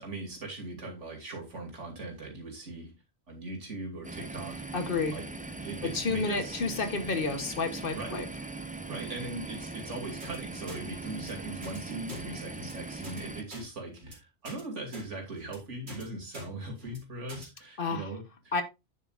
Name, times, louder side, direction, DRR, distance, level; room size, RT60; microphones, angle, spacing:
voice 1, 0.0-2.9 3.3-4.6 5.1-5.3 5.6-6.9 7.9-8.2 8.9-18.5, right 2 dB, 85° right, 2.9 m, -40 dB
sound 1, 4.0-13.4, right 3 dB, 10° right, 0.5 m, -40 dB
voice 2, 4.7-5.2 5.8-8.2 17.8-18.1 18.5-18.6, left 4 dB, 50° left, 1.2 m, -30 dB
sound 2, 10.2-10.4 10.7-10.8 11.1-11.3 11.6-11.8 12.1-12.2 12.5-12.7 13.0-13.2 13.5-13.6 14.0-14.1 14.4-14.6 14.9-15.1 15.4-15.6 15.9-16.0 16.3-16.5 16.8-17.0 17.3-17.5, right 1 dB, 60° right, 2.9 m, -44 dB
9.6 x 7.1 x 2.5 m
omnidirectional pair, 1.2 m